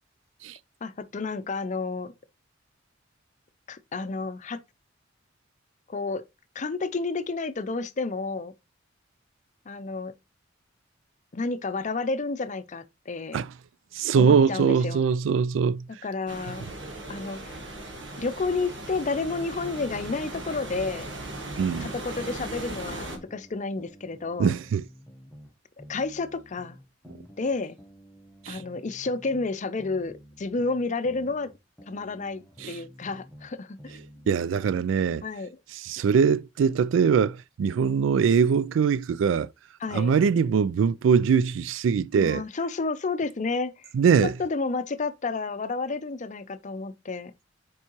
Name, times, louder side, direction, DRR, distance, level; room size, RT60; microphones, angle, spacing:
voice 1, 0.8-2.1 3.7-4.6 5.9-6.2 6.5-8.5 9.7-10.1 11.3-13.4 14.2-15.0 15.9-16.6 17.1-17.6 18.2-21.1 21.8-24.6 25.9-26.8 27.4-27.8 28.5-31.5 31.9-34.0 34.2-34.3 35.2-35.6 39.8-40.1 42.1-43.9 44.2-47.3, left 3 dB, 40° left, 0.5 m, -31 dB
voice 2, 13.9-15.8 21.6-21.9 24.4-24.8 28.5-28.6 32.6-32.8 34.3-35.2 35.8-39.5 39.9-42.4 43.9-44.3, right 6 dB, 85° right, 0.3 m, -22 dB
sound 1, 16.3-23.2, right 2 dB, 70° right, 1.4 m, -38 dB
sound 2, 19.0-21.5 21.8-25.5 25.8-29.5 29.8-33.5 33.8-34.9, equal, 5° left, 1.0 m, -50 dB
7.1 x 4.7 x 2.9 m
head